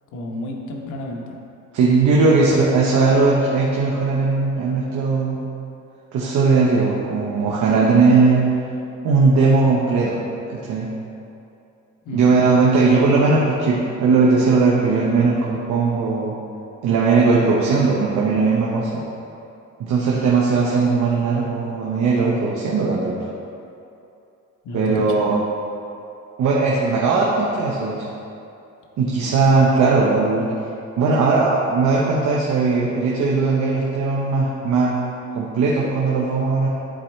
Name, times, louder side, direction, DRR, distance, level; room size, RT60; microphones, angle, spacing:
voice 1, 0.1-1.4 2.4-2.6 12.0-12.3 24.6-25.0, left 1 dB, 75° left, 0 dB, 1.1 m, -31 dB
voice 2, 1.7-5.4 6.1-8.4 9.0-10.2 10.5-10.9 12.1-16.3 16.8-19.0 19.8-23.2 24.7-25.4 26.4-28.0 29.0-30.5 31.0-35.0 35.3-36.7, right 4 dB, 70° right, -4 dB, 1.0 m, -18 dB
11.5 x 4.3 x 3.3 m, 2.7 s
cardioid pair, 90°, 30 cm